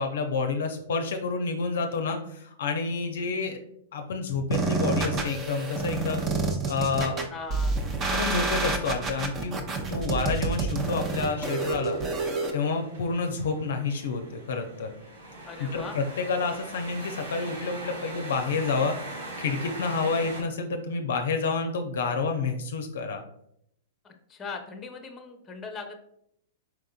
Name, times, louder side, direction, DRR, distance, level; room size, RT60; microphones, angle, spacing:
voice 1, 0.0-3.6 3.9-6.2 6.7-7.2 8.1-12.0 12.5-14.9 15.6-23.2, left 4 dB, 65° left, 5 dB, 0.5 m, -29 dB
sound 1, 4.5-12.5, right 3 dB, 30° right, 0.6 m, -28 dB
voice 2, 7.3-7.8 15.4-16.0 24.0-26.0, left 4 dB, 20° left, 5 dB, 0.7 m, -39 dB
sound 2, 11.1-20.4, right 1 dB, 75° right, 1.1 m, -41 dB
4.7 x 3.6 x 2.3 m, 0.72 s
hypercardioid pair, 105°, 0 cm